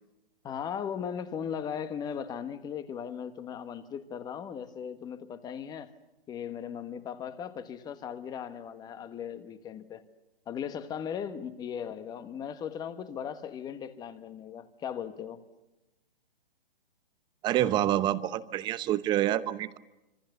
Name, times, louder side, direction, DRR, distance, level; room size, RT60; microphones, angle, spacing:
voice 1, 0.4-5.9 6.3-10.0 10.5-15.4, left 8 dB, 15° left, 11 dB, 1.4 m, -38 dB
voice 2, 17.4-19.8, right 12 dB, 15° right, 15 dB, 0.8 m, -27 dB
26.5 x 26.0 x 6.8 m, 0.99 s
hypercardioid pair, 145°, 29 cm